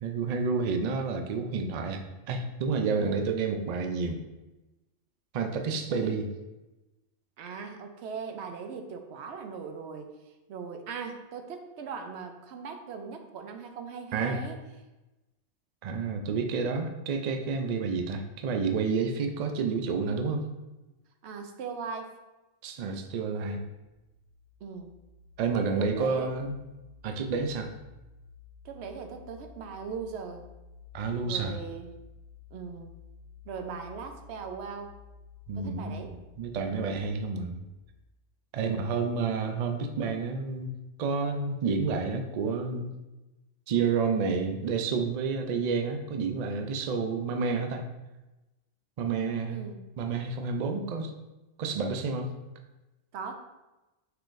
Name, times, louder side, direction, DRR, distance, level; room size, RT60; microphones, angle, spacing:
voice 1, 0.0-2.0 2.3-4.2 5.3-6.3 14.1-14.4 15.8-20.5 22.6-23.7 25.4-26.6 27.0-27.7 30.9-31.6 35.5-36.0 36.4-37.6 38.5-40.7 41.0-42.9 43.7-47.9 49.0-49.6 50.0-51.1 51.6-52.3, right 4 dB, 85° right, 5 dB, 0.3 m, -29 dB
voice 2, 7.4-10.1 10.5-14.6 21.2-22.1 24.6-24.9 25.6-26.4 28.6-30.5 31.2-31.9 32.5-32.9 33.5-35.0 35.6-36.2 36.6-36.9 38.6-38.9 49.5-49.9 53.1-53.4, right 5 dB, 70° right, 5 dB, 0.8 m, -39 dB
sound 1, 24.0-38.0, left 6 dB, 55° left, 1.8 m, -53 dB
5.6 x 3.7 x 2.5 m, 1.1 s
omnidirectional pair, 1.3 m